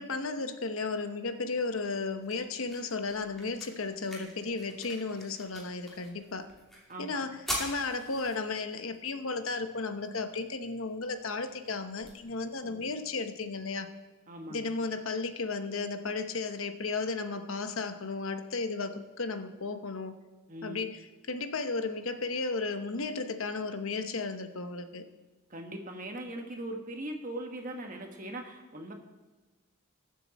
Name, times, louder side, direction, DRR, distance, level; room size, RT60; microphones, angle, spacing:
voice 1, 0.0-6.5 7.0-13.9 14.5-20.1 20.6-25.0, left 3 dB, 75° left, 8 dB, 1.0 m, -34 dB
sound 1, 1.7-13.7, equal, ahead, 2.9 m, -45 dB
voice 2, 6.9-7.2 12.6-12.9 14.3-14.7 20.5-20.9 25.5-28.9, right 1 dB, 40° right, 3 dB, 1.6 m, -40 dB
21.0 x 7.6 x 4.2 m, 1.2 s
head